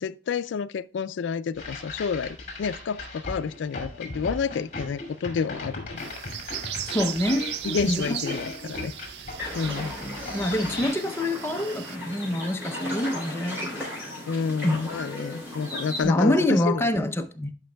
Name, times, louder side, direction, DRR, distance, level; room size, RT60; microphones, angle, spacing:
voice 1, 0.0-6.1 6.5-6.6 7.6-8.9 9.5-10.0 14.3-16.9, left 5 dB, 90° left, 0.3 m, -29 dB
sound 1, 1.6-10.9, left 2 dB, 40° left, 2.3 m, -38 dB
sound 2, 6.0-12.0, right 11 dB, 65° right, 0.4 m, -37 dB
voice 2, 6.9-7.5 7.8-8.4 10.3-13.9 14.6-14.8 16.0-17.5, left 1 dB, 15° left, 0.6 m, -26 dB
sound 3, 9.4-16.0, left 1 dB, 15° right, 3.8 m, -36 dB
11.5 x 5.2 x 2.2 m
head